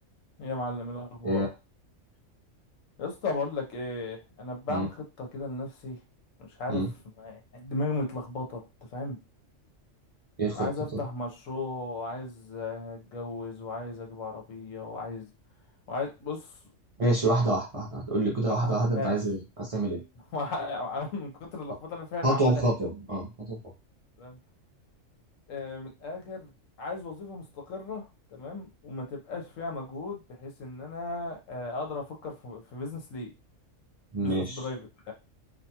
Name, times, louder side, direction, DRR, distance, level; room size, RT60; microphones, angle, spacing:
voice 1, 0.4-1.5 3.0-6.0 6.4-6.8 7.2-9.2 10.5-15.3 15.9-16.5 17.2-17.3 18.5-19.1 20.1-22.9 24.2-24.4 25.5-26.5 26.8-33.3 34.2-35.1, left 3 dB, 80° left, 2 dB, 1.1 m, -36 dB
voice 2, 17.0-20.0 22.2-23.6 34.1-34.6, right 2 dB, 40° right, -4 dB, 0.5 m, -27 dB
2.6 x 2.2 x 2.8 m, 0.27 s
omnidirectional pair, 1.3 m